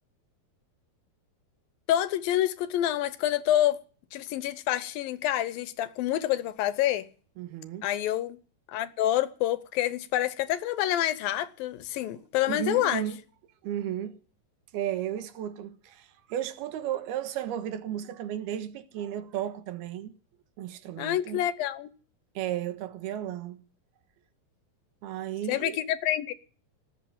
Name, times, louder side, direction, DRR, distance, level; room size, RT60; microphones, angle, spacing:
voice 1, 1.9-3.8 4.1-7.0 7.8-8.4 8.7-13.0 21.0-21.9 25.5-26.3, left 12 dB, 75° left, 2.5 m, -27 dB
voice 2, 7.4-7.9 12.0-12.1 12.5-13.2 13.6-14.2 14.7-20.1 20.6-21.4 22.4-23.6 25.0-25.8, right 11 dB, 85° right, 3.3 m, -34 dB
19.0 x 8.1 x 9.4 m
omnidirectional pair, 4.4 m